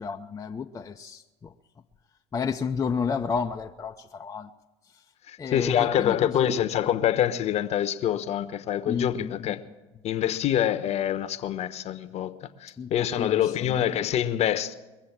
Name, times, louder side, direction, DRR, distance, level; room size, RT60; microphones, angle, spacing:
voice 1, 0.0-1.5 2.3-4.5 5.4-6.6 8.9-9.6 12.8-13.8, left 6 dB, 20° left, 0.7 m, -32 dB
voice 2, 5.3-9.6 10.0-12.3 12.6-14.7, left 10 dB, 45° left, 1.0 m, -26 dB
22.0 x 7.4 x 7.3 m
hypercardioid pair, 80°, 15 cm